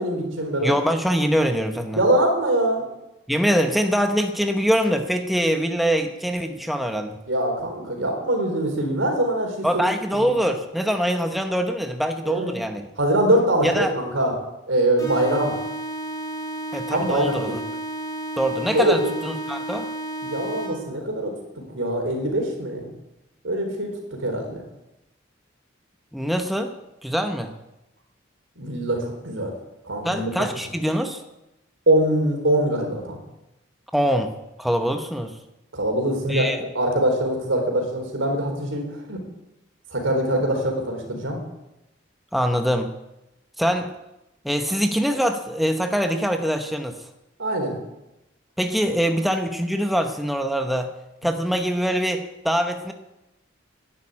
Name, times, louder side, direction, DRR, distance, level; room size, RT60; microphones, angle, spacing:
voice 1, 0.0-0.7 1.9-2.9 7.3-9.8 10.1-10.4 12.2-12.6 13.0-14.3 14.7-15.5 16.9-17.6 18.7-19.1 20.2-21.3 21.7-22.9 23.4-23.9 24.2-24.6 28.6-29.5 29.8-30.3 31.9-33.2 35.7-36.5 36.7-39.2 39.9-41.4 47.4-47.8, right 1 dB, 80° right, 2 dB, 4.0 m, -23 dB
voice 2, 0.6-2.0 3.3-7.2 9.6-12.8 13.6-13.9 16.7-17.6 18.4-19.9 26.1-26.7 27.0-27.5 30.0-31.2 33.9-35.4 36.3-36.6 42.3-43.0 43.6-43.9 44.4-47.0 48.6-50.9 51.2-52.9, equal, ahead, 5 dB, 0.9 m, -23 dB
sound 1, 15.0-21.0, right 1 dB, 20° left, 3.3 m, -32 dB
11.5 x 11.0 x 8.7 m, 0.94 s
head